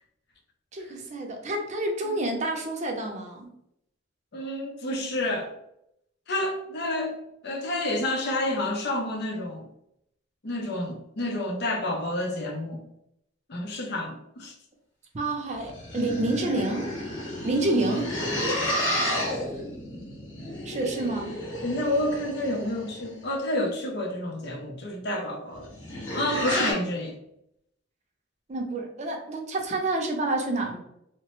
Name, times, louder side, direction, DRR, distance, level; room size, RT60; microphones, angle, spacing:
voice 1, 0.7-3.5 15.1-16.9 17.4-18.1 20.6-21.4 28.5-30.8, right 2 dB, 35° right, 2 dB, 0.5 m, -28 dB
voice 2, 4.3-5.5 6.3-7.1 7.4-9.7 10.4-12.8 13.5-14.5 21.6-25.7 26.1-27.2, left 1 dB, 60° left, 2 dB, 0.6 m, -29 dB
sound 1, 15.5-23.1 25.5-26.7, equal, 75° left, 1.3 m, -31 dB
2.9 x 2.0 x 3.0 m, 0.76 s
head